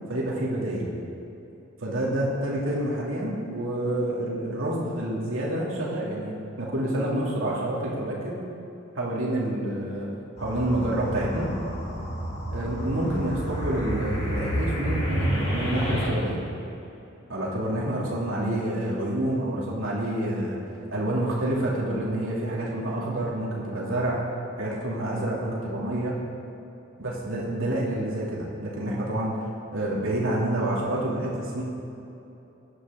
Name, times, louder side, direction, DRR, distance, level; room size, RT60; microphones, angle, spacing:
voice 1, 0.1-0.8 1.8-8.4 8.9-10.1 10.4-11.5 12.5-16.4 17.3-20.6 20.9-24.2 24.6-26.2 27.0-29.4 29.7-31.6, right 1 dB, 80° right, -5 dB, 2.7 m, -28 dB
sound 1, 10.4-16.1, equal, 30° left, 2.6 m, -29 dB
16.0 x 11.0 x 3.7 m, 2.9 s
head